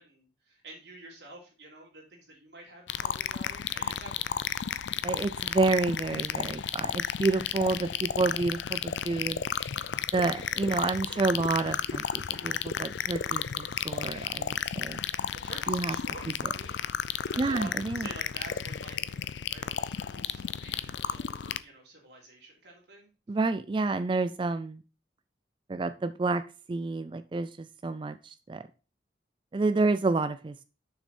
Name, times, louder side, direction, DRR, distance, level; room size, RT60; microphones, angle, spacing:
voice 1, 0.0-4.4 15.3-16.8 17.2-23.1, right 2 dB, 65° right, -2 dB, 3.2 m, -48 dB
sound 1, 2.9-21.6, left 8 dB, 80° left, 0.5 m, -33 dB
voice 2, 5.0-9.4 10.1-15.0 15.7-16.0 17.4-18.1 23.3-24.8 25.7-26.4 26.7-28.7 29.5-30.6, right 3 dB, 25° right, 13 dB, 0.3 m, -29 dB
6.6 x 6.1 x 4.3 m, 0.33 s
head